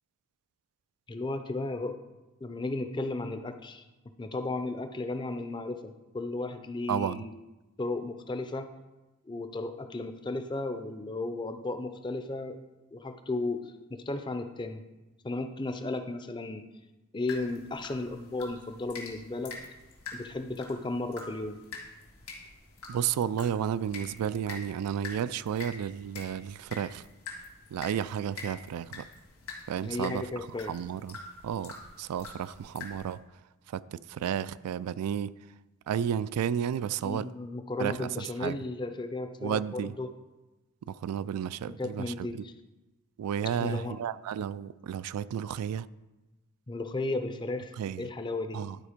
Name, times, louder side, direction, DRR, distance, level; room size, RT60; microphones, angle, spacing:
voice 1, 1.1-2.0 2.4-3.8 4.2-7.3 7.8-8.7 9.3-12.6 12.9-14.8 15.2-16.6 17.1-19.6 20.1-21.6 29.8-30.7 37.0-40.1 41.7-42.5 43.5-44.0 46.7-48.6, left 2 dB, 20° left, 0.4 m, -34 dB
voice 2, 6.9-7.2 22.9-27.0 27.7-29.1 29.7-30.2 30.7-31.2 31.4-33.2 33.7-35.3 35.9-37.3 37.8-38.1 38.4-38.6 39.4-39.9 40.9-42.4 43.2-45.9 47.8-48.0 48.5-48.8, right 9 dB, 85° right, 0.3 m, -32 dB
sound 1, 17.3-33.1, left 3 dB, 75° left, 2.0 m, -46 dB
11.5 x 4.2 x 5.1 m
head